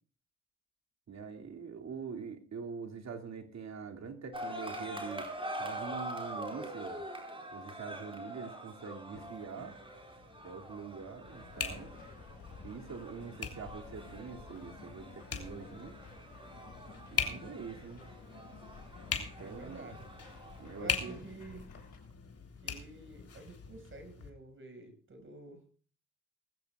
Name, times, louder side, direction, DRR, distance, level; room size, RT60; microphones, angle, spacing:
voice 1, 1.1-5.3 5.6-7.0 7.5-9.8 10.4-11.9 12.6-16.0 17.1-18.0 19.2-19.9 20.6-21.2, right 5 dB, 65° right, 4 dB, 2.6 m, -44 dB
sound 1, 4.3-21.2, right 1 dB, 20° right, 4.5 m, -45 dB
sound 2, 9.1-24.3, left 6 dB, 55° left, 3.4 m, -42 dB
sound 3, 11.3-22.0, left 5 dB, 80° left, 5.7 m, -54 dB
voice 2, 19.4-20.1 20.6-21.7 22.6-25.6, right 2 dB, 45° right, 6 dB, 5.9 m, -49 dB
20.0 x 15.5 x 2.4 m, 0.40 s
cardioid pair, 85°, 29 cm